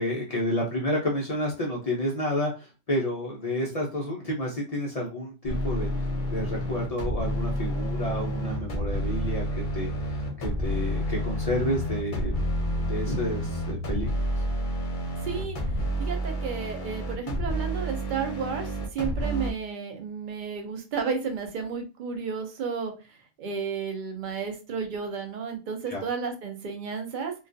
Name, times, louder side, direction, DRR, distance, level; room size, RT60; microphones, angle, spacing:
voice 1, 0.0-12.3 12.7-14.1 25.9-26.0, equal, 70° left, -3 dB, 0.3 m, -30 dB
sound 1, 5.4-19.5, equal, 50° left, 0.7 m, -30 dB
sound 2, 8.5-16.0, left 3 dB, 80° right, 0.9 m, -38 dB
voice 2, 15.2-15.6 16.0-27.3, right 5 dB, 60° right, 5 dB, 0.5 m, -32 dB
2.3 x 2.3 x 2.5 m, 0.31 s
omnidirectional pair, 1.3 m